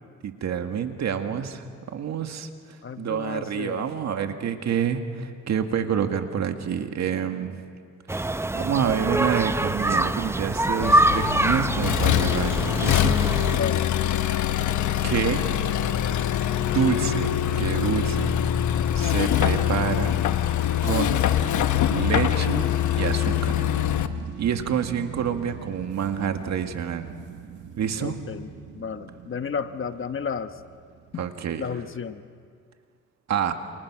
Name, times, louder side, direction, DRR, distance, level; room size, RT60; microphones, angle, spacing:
voice 1, 0.2-1.6 1.9-2.5 3.0-7.6 8.1-13.2 15.0-15.4 16.7-18.3 18.9-20.2 20.8-21.2 21.9-23.7 24.4-27.1 27.8-28.2 31.2-31.7 33.3-33.5, right 8 dB, 65° right, 6 dB, 2.0 m, -27 dB
voice 2, 2.8-3.8 13.5-13.9 28.0-28.5 28.8-30.5 31.1-31.3 31.6-32.2, left 6 dB, 40° left, 9 dB, 1.2 m, -32 dB
sound 1, 8.1-13.6, right 1 dB, 10° right, 0.6 m, -24 dB
Accelerating revving vroom, 10.8-24.1, left 10 dB, 75° left, 1.2 m, -24 dB
sound 2, 23.3-32.0, right 9 dB, 80° right, 2.0 m, -41 dB
28.5 x 28.5 x 6.2 m, 2.1 s
cardioid pair, 90°, 30 cm